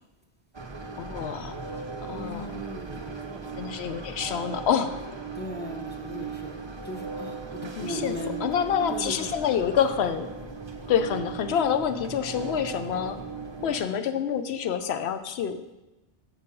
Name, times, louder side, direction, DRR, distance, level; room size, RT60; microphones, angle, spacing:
sound 1, 0.5-13.8, right 4 dB, 30° right, 0.6 m, -37 dB
voice 1, 1.0-1.6 2.1-2.6 3.6-4.9 7.6-10.3 10.9-13.2 13.6-15.6, left 8 dB, 85° left, 10 dB, 0.9 m, -27 dB
voice 2, 2.1-3.1 5.3-6.6 6.8-8.4 8.9-9.3, left 1 dB, 10° left, 1 dB, 0.7 m, -38 dB
6.4 x 5.2 x 6.8 m, 1.0 s
omnidirectional pair, 1.1 m